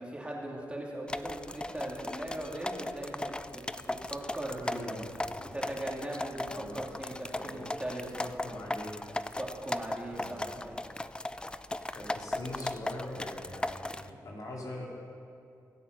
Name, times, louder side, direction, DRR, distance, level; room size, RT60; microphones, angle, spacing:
voice 1, 0.0-5.0 5.4-6.5 6.7-8.1 9.4-10.8, right 1 dB, 15° right, -3 dB, 3.0 m, -39 dB
sound 1, 1.1-14.1, left 1 dB, 15° left, 0.5 m, -37 dB
voice 2, 4.6-5.3 6.5-6.8 7.3-7.7 8.2-9.0 10.1-10.5 11.9-14.9, left 1 dB, 55° left, -3 dB, 3.4 m, -42 dB
24.5 x 8.5 x 5.5 m, 2.5 s
cardioid pair, 70°, 7 cm